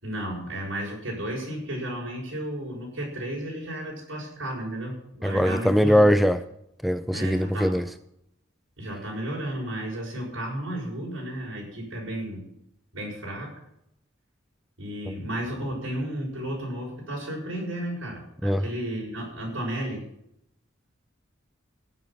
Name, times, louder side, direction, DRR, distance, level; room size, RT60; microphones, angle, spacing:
voice 1, 0.0-6.1 7.1-7.8 8.8-12.4 12.9-13.6 14.8-20.0, right 1 dB, 85° right, -4 dB, 6.2 m, -33 dB
voice 2, 5.2-6.4 6.8-7.9 15.1-15.2 18.4-18.6, equal, ahead, 11 dB, 0.4 m, -21 dB
18.0 x 7.4 x 6.0 m, 0.78 s
head